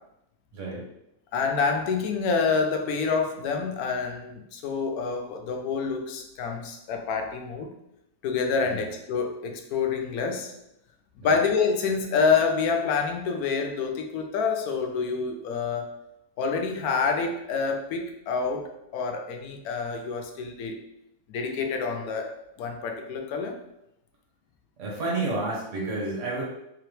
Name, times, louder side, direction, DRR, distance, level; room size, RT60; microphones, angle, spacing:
voice 1, 0.5-0.8 8.6-8.8 11.2-11.4 24.8-26.4, right 2 dB, 55° right, -4 dB, 1.4 m, -30 dB
voice 2, 1.3-7.7 8.2-10.5 11.2-16.0 16.4-20.8 21.3-22.3 22.6-23.6, left 5 dB, 75° left, 4 dB, 1.1 m, -27 dB
3.7 x 2.9 x 3.2 m, 0.84 s
omnidirectional pair, 1.6 m